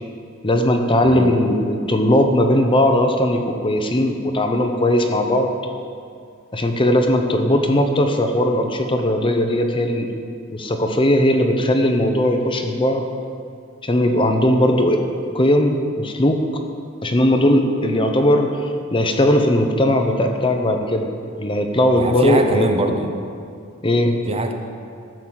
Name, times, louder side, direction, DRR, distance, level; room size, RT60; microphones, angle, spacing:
voice 1, 0.4-5.5 6.5-10.1 10.5-13.1 13.8-15.0 15.3-16.4 17.0-18.5 18.9-21.1 21.4-22.9 23.8-24.2, left 1 dB, 25° left, 4 dB, 0.8 m, -18 dB
voice 2, 1.0-1.3 21.9-23.1 24.3-24.5, right 1 dB, 30° right, 4 dB, 0.8 m, -23 dB
12.5 x 6.3 x 7.6 m, 2.3 s
head